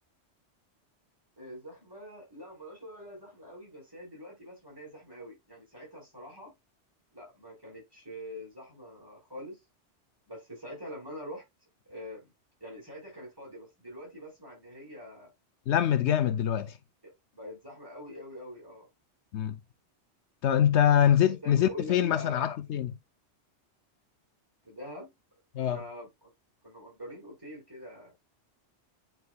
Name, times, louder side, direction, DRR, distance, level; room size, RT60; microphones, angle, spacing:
voice 1, 1.4-6.5 7.1-9.6 10.3-11.4 11.9-12.3 12.6-15.3 17.0-18.9 20.8-21.0 21.2-22.5 24.6-25.1 25.6-26.3 26.6-28.1, equal, 20° right, 5.0 m, -45 dB
voice 2, 15.7-16.7 19.3-19.6 20.4-23.0 25.5-25.8, left 10 dB, 75° left, 0.9 m, -24 dB
9.4 x 4.6 x 2.3 m
omnidirectional pair, 1.2 m